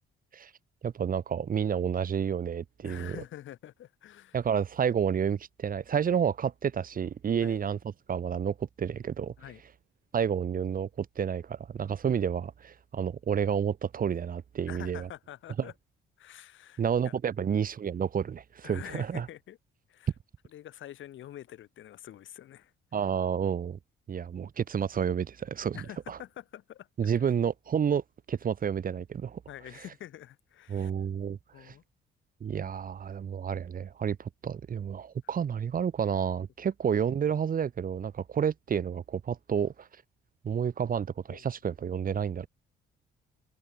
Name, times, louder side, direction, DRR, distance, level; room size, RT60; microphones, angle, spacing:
voice 1, 0.8-3.2 4.3-7.8 8.1-9.3 10.1-15.1 15.6-15.7 16.8-19.3 22.9-23.8 24.1-25.8 26.1-26.2 27.0-28.0 28.3-29.4 30.7-31.7 32.4-39.9 40.4-42.5, right 7 dB, 45° right, 1.1 m, -30 dB
voice 2, 2.8-4.4 7.4-7.6 9.4-9.6 14.7-15.7 16.2-17.1 18.6-19.6 19.9-20.1 20.5-22.7 25.7-27.1 29.5-30.9 31.5-31.8 41.3-41.5, left 12 dB, 75° left, 5.9 m, -46 dB
cardioid pair, 90°, 20 cm